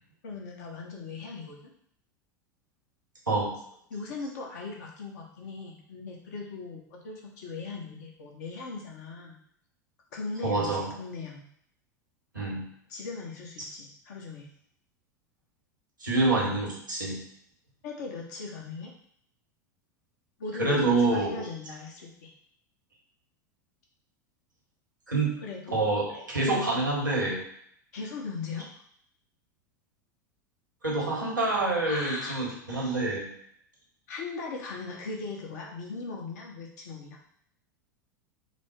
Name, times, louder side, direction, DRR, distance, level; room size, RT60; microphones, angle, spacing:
voice 1, 0.2-1.7 3.9-9.4 10.1-11.5 12.9-14.5 17.8-18.9 20.4-22.3 25.4-25.8 27.9-28.7 31.8-32.4 34.1-37.2, left 4 dB, 60° left, -1 dB, 1.1 m, -39 dB
voice 2, 10.4-10.9 12.3-12.6 16.0-17.2 20.6-21.4 25.1-25.3 25.7-27.4 30.8-33.3, right 2 dB, 85° right, -3 dB, 1.5 m, -26 dB
4.5 x 2.1 x 4.4 m, 0.67 s
figure-of-eight pair, 85°, 10 cm